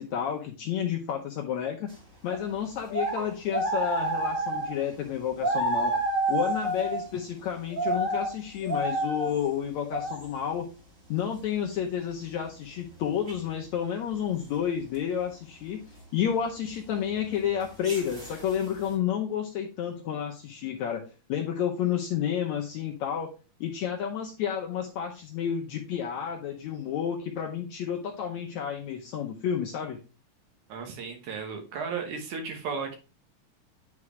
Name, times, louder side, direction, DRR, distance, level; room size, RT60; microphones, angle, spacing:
voice 1, 0.0-1.9 2.2-5.9 6.3-10.7 11.1-15.8 16.1-21.0 21.3-30.0, left 9 dB, 75° left, 2 dB, 1.7 m, -30 dB
sound 1, 2.3-2.4 2.9-4.8 5.4-7.1 7.5-8.4 8.6-9.4 9.8-10.3 13.3-13.5 17.3-18.8, right 2 dB, 25° right, 2.1 m, -29 dB
voice 2, 30.7-33.0, right 5 dB, 65° right, 4 dB, 2.4 m, -34 dB
9.5 x 4.8 x 3.2 m, 0.31 s
omnidirectional pair, 4.1 m